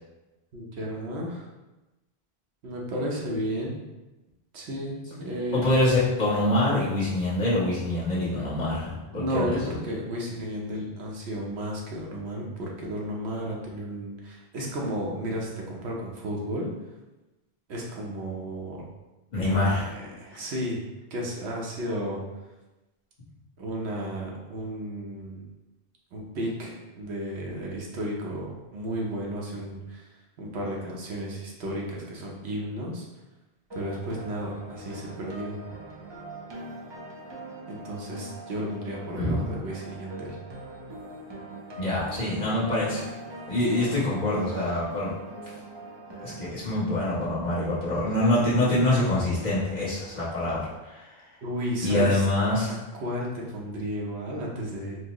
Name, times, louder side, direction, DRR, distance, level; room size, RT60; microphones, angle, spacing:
voice 1, 0.5-1.5 2.6-3.8 4.5-5.8 9.1-16.7 17.7-18.8 19.4-20.8 21.1-22.2 23.6-25.4 26.1-30.1 30.4-33.0 33.7-35.6 37.7-40.4 51.4-52.3 52.7-55.1, equal, 80° right, -2 dB, 1.0 m, -33 dB
voice 2, 5.5-9.6 19.3-19.9 39.2-39.3 41.8-43.1 43.5-45.1 46.2-51.1 51.8-52.7, left 1 dB, 45° left, -8 dB, 1.1 m, -25 dB
sound 1, 33.7-46.5, right 2 dB, 45° right, 0.3 m, -42 dB
4.3 x 2.0 x 2.9 m, 1.1 s
omnidirectional pair, 1.1 m